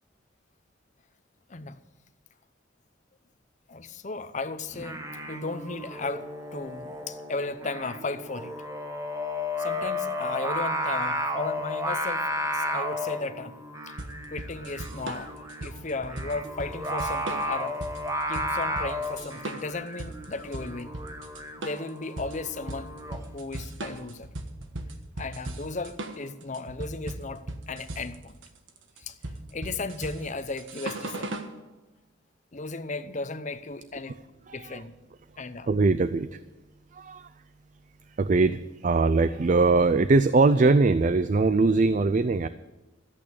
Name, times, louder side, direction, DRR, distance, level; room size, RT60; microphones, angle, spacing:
voice 1, 3.7-8.5 9.6-12.3 12.5-13.6 13.9-14.0 14.3-17.8 18.3-20.9 21.6-22.9 23.3-24.3 25.2-28.4 29.0-29.2 29.5-31.3 32.5-34.2 34.5-34.9 35.4-35.7, left 3 dB, 40° left, 11 dB, 0.8 m, -35 dB
Singing, 4.7-23.2, equal, 15° right, 1.1 m, -33 dB
sound 1, 14.0-31.5, right 2 dB, 85° right, 1.4 m, -38 dB
voice 2, 34.5-34.8 35.7-36.4 36.9-37.3 38.2-42.5, right 3 dB, 40° right, 13 dB, 0.4 m, -22 dB
14.0 x 8.4 x 8.6 m, 1.1 s
head